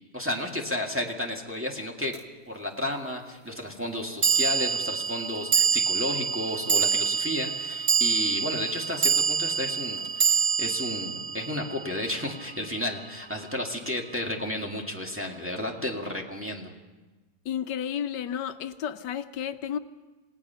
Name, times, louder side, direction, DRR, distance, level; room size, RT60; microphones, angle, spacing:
voice 1, 0.1-2.1 2.5-16.7, left 1 dB, 5° right, 0 dB, 1.8 m, -32 dB
sound 1, 2.1-2.2 4.2-12.6, right 6 dB, 40° right, 1.3 m, -26 dB
voice 2, 17.4-19.8, left 9 dB, 85° left, 10 dB, 1.5 m, -32 dB
27.5 x 17.5 x 5.7 m, 1.2 s
omnidirectional pair, 1.8 m